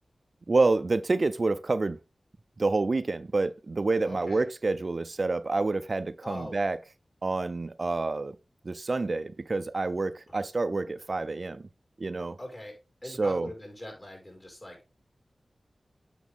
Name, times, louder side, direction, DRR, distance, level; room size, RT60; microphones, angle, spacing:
voice 1, 0.5-2.0 2.6-6.8 7.2-8.4 8.6-11.7 12.0-12.4 13.1-13.5, right 3 dB, 55° right, 0.5 m, -28 dB
voice 2, 4.0-4.4 6.2-6.6 10.3-10.4 12.4-12.7 13.0-14.9, left 1 dB, 35° left, 5.5 m, -42 dB
8.3 x 5.9 x 3.6 m
cardioid pair, 40°, 0 cm